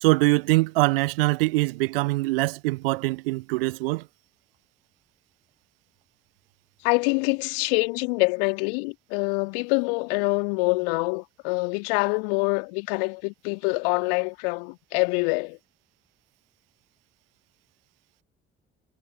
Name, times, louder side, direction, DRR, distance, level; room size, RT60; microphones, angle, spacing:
voice 1, 0.0-4.0, right 22 dB, 75° right, 0.6 m, -23 dB
voice 2, 6.8-15.6, left 34 dB, 70° left, 2.4 m, -25 dB
figure-of-eight pair, 45°, 30 cm